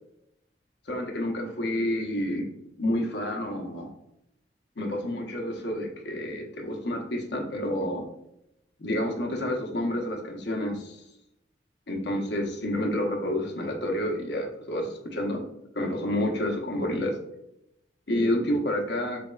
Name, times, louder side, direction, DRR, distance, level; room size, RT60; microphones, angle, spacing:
voice 1, 0.9-2.5 2.8-3.9 4.8-8.1 8.8-11.0 11.9-15.4 15.7-17.2 18.1-19.2, left 1 dB, 65° left, 2 dB, 0.9 m, -29 dB
4.2 x 3.4 x 2.3 m, 0.82 s
head